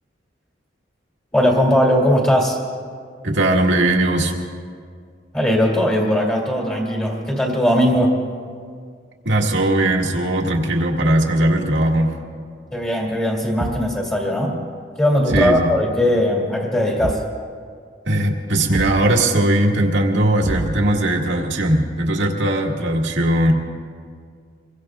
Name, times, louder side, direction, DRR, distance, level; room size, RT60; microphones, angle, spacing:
voice 1, 1.3-2.6 5.3-8.2 12.7-14.6 15.0-17.2, equal, 10° left, -3 dB, 2.4 m, -19 dB
voice 2, 3.2-4.3 9.3-12.1 15.3-15.7 18.1-23.5, right 1 dB, 85° right, 0 dB, 2.0 m, -19 dB
Thump thud, 13.6-14.0 15.3-15.6 17.0-17.4 18.7-19.1 20.4-21.0, right 2 dB, 30° right, 0.4 m, -27 dB
26.5 x 22.5 x 2.4 m, 2.1 s
head